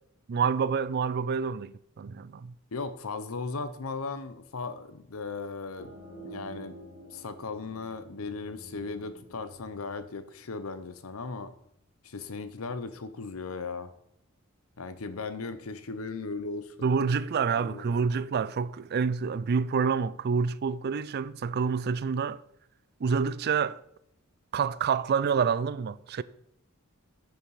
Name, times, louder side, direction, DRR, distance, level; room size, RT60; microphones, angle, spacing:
voice 1, 0.3-2.5 16.8-22.4 23.0-23.8 24.5-26.2, right 6 dB, 50° right, 0.4 m, -27 dB
voice 2, 2.7-5.9 6.2-6.8 7.1-11.5 12.0-13.9 14.8-16.8 17.4-17.9, left 4 dB, 85° left, 0.8 m, -37 dB
sound 1, 5.8-11.2, right 2 dB, 35° left, 2.6 m, -49 dB
10.5 x 5.4 x 4.8 m
head